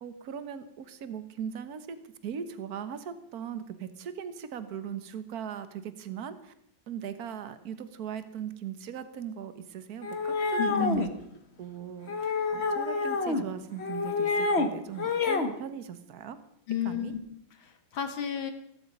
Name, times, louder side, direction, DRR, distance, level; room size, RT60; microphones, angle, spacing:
voice 1, 0.0-6.5 6.9-11.1 11.6-16.4 16.8-17.1, right 8 dB, 55° right, 11 dB, 1.6 m, -39 dB
sound 1, 10.0-11.1 12.1-13.4 13.8-14.7 15.0-15.5, left 3 dB, 35° left, 1.5 m, -28 dB
voice 2, 10.6-11.0 16.7-17.2 17.6-18.5, left 7 dB, 90° left, 7 dB, 2.6 m, -31 dB
17.0 x 14.0 x 5.4 m, 0.73 s
omnidirectional pair, 2.1 m